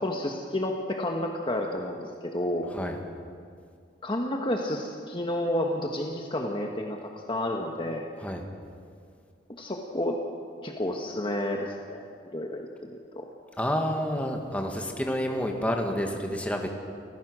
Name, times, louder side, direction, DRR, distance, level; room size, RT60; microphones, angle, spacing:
voice 1, 0.0-2.7 4.0-8.0 9.6-10.2 10.6-12.0 12.3-13.2, left 1 dB, 25° left, 1 dB, 1.4 m, -30 dB
voice 2, 13.6-16.7, equal, 10° left, 2 dB, 1.9 m, -29 dB
29.0 x 15.0 x 6.3 m, 2.2 s
head